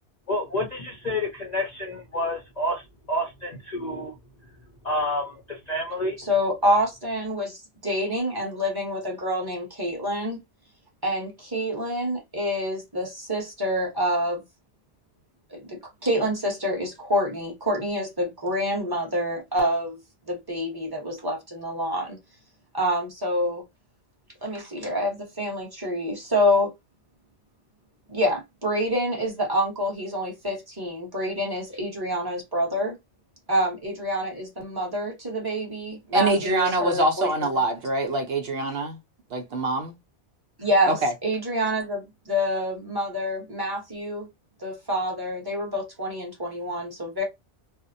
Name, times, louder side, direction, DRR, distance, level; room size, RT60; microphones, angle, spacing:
voice 1, 0.3-4.2 4.8-6.2, left 1 dB, 50° left, 0.5 m, -29 dB
voice 2, 6.2-10.4 11.0-14.4 15.5-20.0 20.3-22.2 22.7-23.6 24.4-26.7 28.1-33.0 33.5-37.3 40.6-41.0 41.2-44.3 44.6-47.2, equal, 20° right, 1.0 m, -27 dB
voice 3, 36.1-39.0 39.3-40.0 40.9-41.1, right 2 dB, 60° right, 0.8 m, -24 dB
2.6 x 2.0 x 2.5 m
omnidirectional pair, 1.2 m